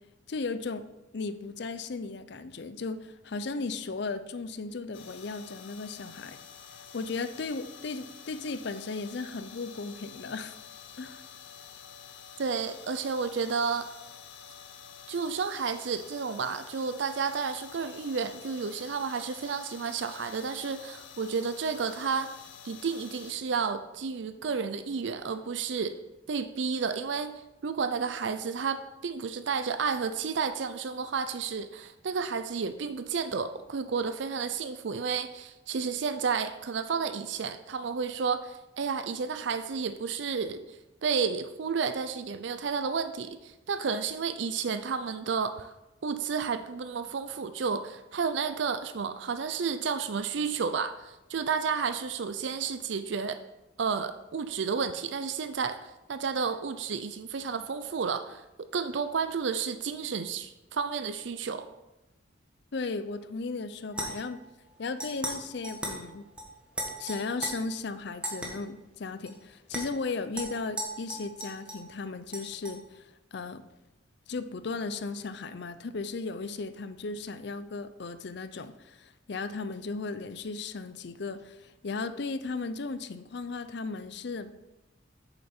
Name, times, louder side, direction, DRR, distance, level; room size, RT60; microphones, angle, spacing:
voice 1, 0.3-0.9 1.1-6.4 6.9-10.6 11.0-11.2 62.7-64.4 64.8-66.2 67.0-73.6 74.3-84.5, left 3 dB, 60° left, 12 dB, 0.5 m, -36 dB
sound 1, 4.9-23.3, left 7 dB, 75° left, 0.8 m, -49 dB
voice 2, 12.4-13.9 15.1-22.3 22.6-26.0 26.3-27.3 27.6-45.7 46.0-53.4 53.8-58.4 58.7-61.7, right 5 dB, 65° right, 10 dB, 0.5 m, -31 dB
sound 2, 63.9-64.4 65.0-65.4 65.6-66.0 66.4-66.5 66.7-67.5 68.2-68.5 69.3-69.4 69.7-69.8 70.4-71.9 72.3-72.8, right 1 dB, 5° right, 1.5 m, -36 dB
8.6 x 7.0 x 4.4 m, 0.96 s
head